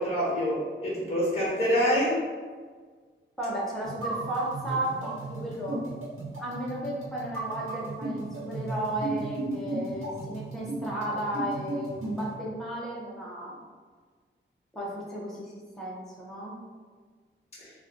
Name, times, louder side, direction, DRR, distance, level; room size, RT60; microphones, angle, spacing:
voice 1, 0.0-2.2, equal, 30° left, -6 dB, 1.1 m, -26 dB
voice 2, 3.4-5.8 6.4-13.6 14.7-16.6, right 1 dB, ahead, -7 dB, 0.8 m, -34 dB
sound 1, 3.8-12.3, right 2 dB, 80° right, 0.9 m, -35 dB
3.0 x 2.3 x 3.8 m, 1.5 s
wide cardioid pair, 170°, 21 cm